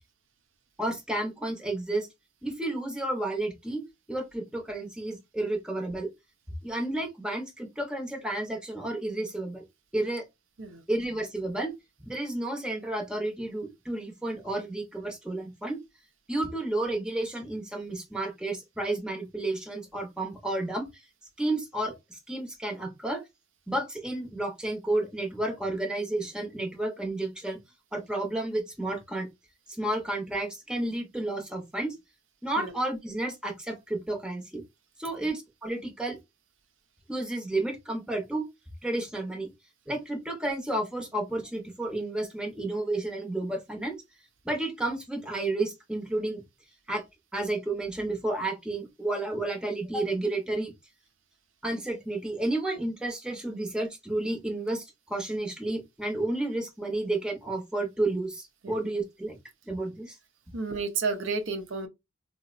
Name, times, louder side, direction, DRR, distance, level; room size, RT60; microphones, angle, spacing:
voice 1, 0.8-2.1 2.4-3.8 4.1-6.1 6.6-9.6 9.9-10.2 10.9-11.7 12.1-15.8 16.3-21.0 21.4-23.2 23.7-27.6 27.9-29.3 29.7-32.0 32.4-34.6 35.0-36.2 37.1-38.5 38.8-39.5 39.9-44.0 44.4-46.4 46.9-47.0 47.3-50.7 51.6-59.4 59.7-60.2, right 2 dB, 5° right, 0.7 m, -31 dB
voice 2, 60.5-61.9, right 4 dB, 70° right, 0.5 m, -31 dB
3.8 x 2.0 x 2.4 m
head